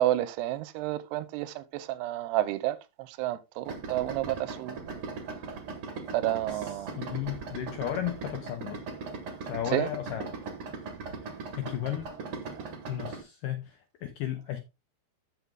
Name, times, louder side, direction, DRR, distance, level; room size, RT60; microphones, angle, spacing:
voice 1, 0.0-4.8 6.1-6.9 9.7-9.9, right 14 dB, 85° right, 2.6 m, -30 dB
Idling, 3.7-13.2, right 4 dB, 55° right, 1.5 m, -39 dB
voice 2, 6.5-8.8 9.4-10.3 11.5-12.1 12.9-14.6, left 11 dB, 80° left, 1.9 m, -34 dB
14.0 x 5.9 x 2.3 m
omnidirectional pair, 4.8 m